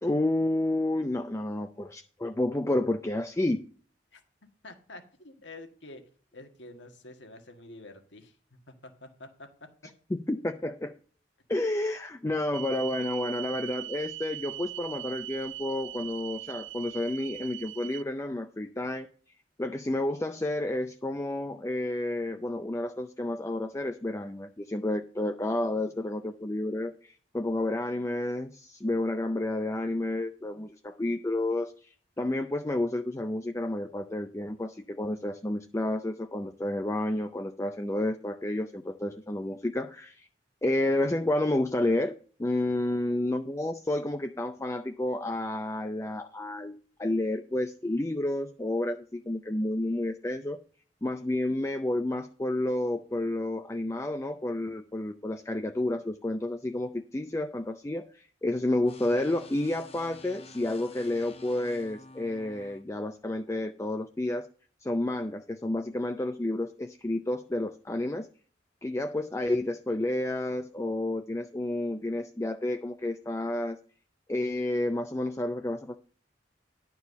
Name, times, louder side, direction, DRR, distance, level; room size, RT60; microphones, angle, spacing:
voice 1, 0.0-3.6 10.3-10.9 11.5-19.1 19.6-40.3 40.6-42.1 42.4-50.6 51.0-64.5 64.8-68.3 68.8-73.8 74.3-76.0, left 1 dB, 15° left, 7 dB, 0.5 m, -30 dB
voice 2, 4.6-6.0 6.3-9.5 25.6-26.1 42.7-43.0, left 2 dB, 80° left, 6 dB, 1.7 m, -49 dB
sound 1, 12.5-18.0, right 15 dB, 85° right, 0.4 m, -40 dB
sound 2, 58.9-62.8, left 2 dB, 35° left, 0.9 m, -50 dB
11.0 x 4.6 x 6.8 m, 0.42 s
head